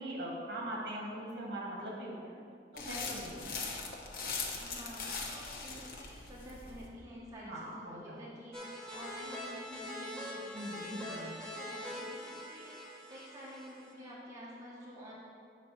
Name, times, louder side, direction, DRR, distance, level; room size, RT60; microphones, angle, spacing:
voice 1, 0.0-2.3 2.7-3.7 7.4-8.3 10.5-11.3, right 1 dB, 65° right, -3 dB, 1.8 m, -41 dB
sound 1, 2.8-6.9, left 4 dB, 55° left, 0.9 m, -40 dB
voice 2, 4.6-15.1, equal, 20° right, -7 dB, 1.3 m, -50 dB
sound 2, 8.5-13.9, left 1 dB, 5° left, 1.2 m, -43 dB
8.4 x 4.0 x 5.9 m, 2.3 s
head